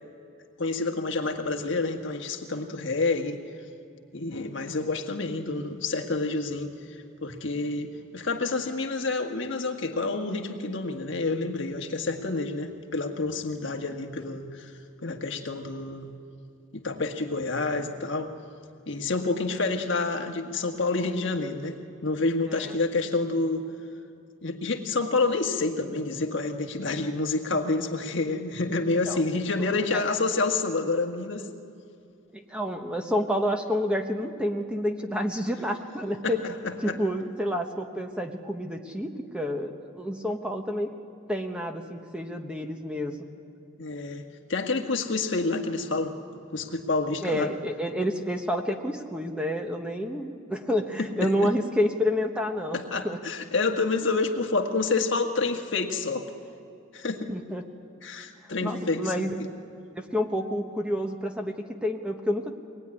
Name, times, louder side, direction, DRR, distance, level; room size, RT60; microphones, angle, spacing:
voice 1, 0.6-3.4 4.1-14.7 15.0-16.1 16.7-18.3 18.9-23.6 24.4-31.5 36.2-36.3 36.6-37.0 43.8-44.2 44.5-46.1 46.5-47.5 51.2-51.5 52.7-56.3 56.9-57.3 58.0-59.3, left 3 dB, 60° left, 3 dB, 1.5 m, -28 dB
voice 2, 29.6-30.0 32.3-36.4 36.8-40.9 41.3-43.2 47.2-53.2 57.3-57.6 58.6-59.4 60.0-62.6, equal, 5° right, 4 dB, 1.1 m, -29 dB
23.0 x 19.5 x 9.7 m, 2.5 s
head